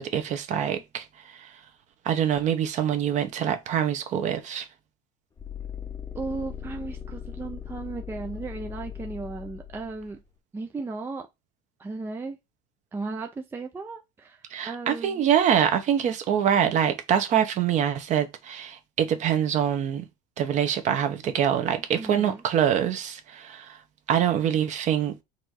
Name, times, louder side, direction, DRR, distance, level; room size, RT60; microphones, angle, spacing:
voice 1, 0.0-1.5 2.0-4.7 14.5-20.0 20.4-23.8 24.1-25.2, right 9 dB, 40° right, 0.9 m, -25 dB
sound 1, 5.4-10.3, left 8 dB, 20° left, 0.7 m, -39 dB
voice 2, 6.1-10.2 10.5-11.3 11.8-12.4 12.9-15.2 22.0-22.4, right 3 dB, 10° right, 0.5 m, -35 dB
4.1 x 2.7 x 4.8 m
supercardioid pair, 130°, 18 cm